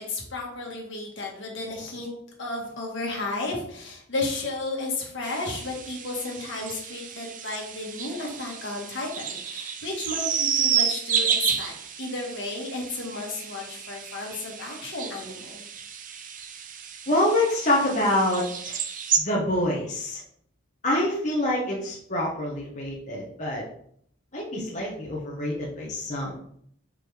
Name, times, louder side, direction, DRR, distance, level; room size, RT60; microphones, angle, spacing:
voice 1, 0.0-2.1 2.4-15.7, left 2 dB, 60° left, -1 dB, 1.8 m, -33 dB
sound 1, 5.2-19.2, right 7 dB, 40° right, 0.6 m, -31 dB
voice 2, 17.1-18.8 19.2-20.2 20.8-23.6 24.3-26.4, left 1 dB, 35° left, -5 dB, 1.4 m, -26 dB
5.0 x 4.3 x 5.1 m, 0.65 s
head